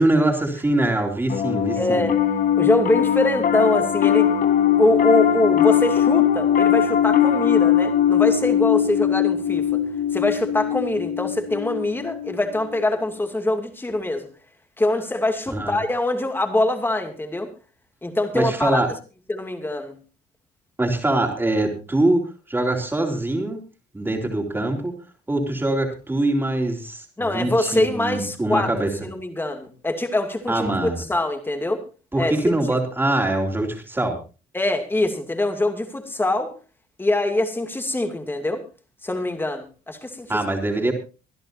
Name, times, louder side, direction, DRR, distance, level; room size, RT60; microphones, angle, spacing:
voice 1, 0.0-2.1 15.5-15.7 18.3-18.9 20.8-23.6 23.9-24.9 25.3-28.9 30.5-31.0 32.1-34.2 40.3-40.9, right 2 dB, 10° right, 2 dB, 3.9 m, -23 dB
Piano, 1.3-12.8, left 10 dB, 55° left, 1.4 m, -20 dB
voice 2, 1.8-2.2 2.6-4.3 4.8-9.8 10.1-14.3 14.8-17.5 18.0-18.8 19.3-20.0 27.2-28.7 29.0-31.8 32.1-32.5 34.5-36.5 37.0-38.6 39.0-40.3, left 2 dB, 10° left, 6 dB, 2.6 m, -23 dB
24.5 x 11.0 x 2.7 m, 0.33 s
cardioid pair, 110°, 17 cm